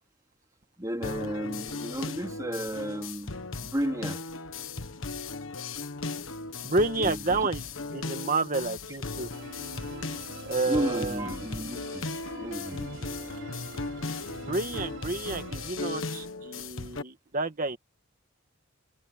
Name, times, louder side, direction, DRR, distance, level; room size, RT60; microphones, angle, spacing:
voice 1, 0.8-4.2 7.0-7.5 10.7-12.1 12.4-13.0, equal, 15° right, 3.9 m, -33 dB
sound 1, 1.0-17.0, left 3 dB, 75° left, 1.5 m, -37 dB
voice 2, 6.6-7.7 7.9-9.3 10.4-11.3 14.3-17.8, right 3 dB, 40° right, 1.8 m, -30 dB
Musical instrument, 9.3-15.7, right 2 dB, 65° right, 5.4 m, -45 dB
head